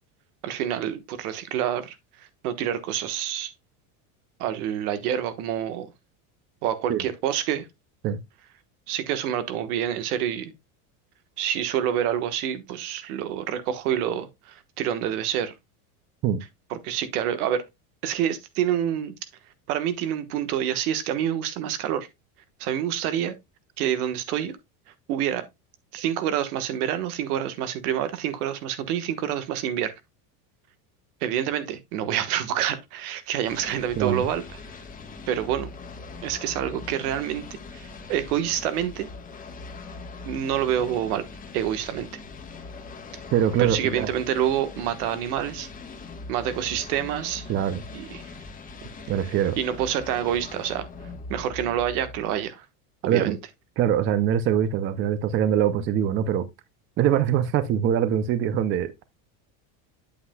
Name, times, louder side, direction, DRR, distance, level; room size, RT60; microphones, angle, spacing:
voice 1, 0.4-3.5 4.4-5.9 6.6-7.7 8.9-10.5 11.4-15.5 16.7-17.6 18.0-19.1 19.7-22.1 22.6-23.3 23.8-24.6 25.1-25.4 25.9-29.9 31.2-34.4 35.3-35.7 36.2-37.5 37.7-39.1 40.2-41.2 41.5-42.2 43.6-45.7 46.3-47.5 47.9-48.3 49.6-50.9 51.3-52.6 53.0-53.4, right 10 dB, 80° right, 1.3 m, -27 dB
sound 1, 33.4-52.5, left 3 dB, 20° left, 1.2 m, -41 dB
voice 2, 43.3-44.1 47.5-47.8 49.1-49.6 53.0-53.4 53.8-56.5 57.0-59.0, right 9 dB, 30° right, 0.5 m, -23 dB
8.5 x 7.7 x 2.2 m
cardioid pair, 155°, 44 cm